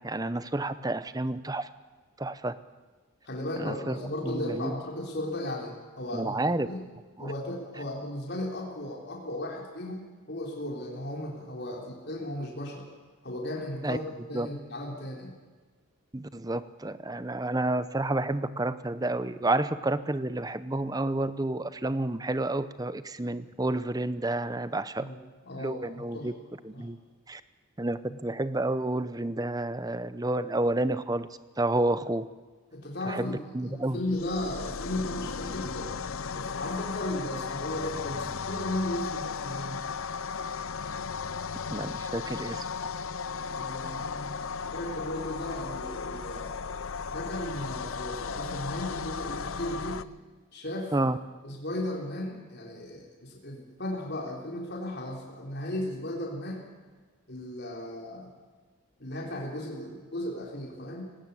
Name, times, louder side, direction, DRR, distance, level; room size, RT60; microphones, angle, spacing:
voice 1, 0.0-1.7 2.2-2.5 3.6-4.0 4.3-4.7 6.1-6.7 7.2-7.3 13.8-14.0 14.3-14.5 16.1-25.1 25.6-26.3 26.6-27.0 27.3-27.4 27.8-31.3 31.6-32.3 33.1-34.0 41.7-42.7 50.9-51.2, right 2 dB, 15° right, 14 dB, 0.7 m, -30 dB
voice 2, 3.3-6.8 7.2-12.9 13.2-15.4 25.0-26.3 26.7-26.9 32.7-36.0 36.3-39.8 43.3-46.5 47.1-50.1 50.5-50.9 51.4-56.7 57.3-58.3 59.0-61.0, left 1 dB, 50° left, -2 dB, 3.7 m, -36 dB
sound 1, 34.0-50.0, left 5 dB, 65° left, 0.7 m, -35 dB
18.5 x 17.5 x 8.4 m, 1.4 s
head